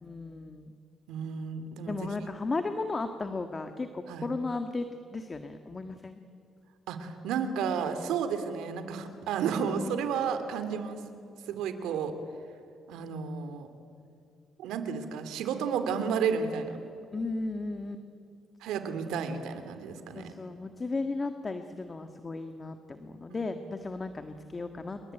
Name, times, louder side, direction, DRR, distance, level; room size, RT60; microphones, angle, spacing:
voice 1, 0.0-0.7 1.9-4.9 5.1-6.1 17.1-18.0 20.1-25.0, left 3 dB, 30° left, 8 dB, 1.7 m, -35 dB
voice 2, 1.1-2.1 4.1-4.3 6.9-11.0 11.5-12.1 12.9-13.7 14.6-16.8 18.6-20.3 23.3-23.4, right 6 dB, 90° right, 9 dB, 3.0 m, -32 dB
29.0 x 22.5 x 9.1 m, 2.5 s
cardioid pair, 90°, 0 cm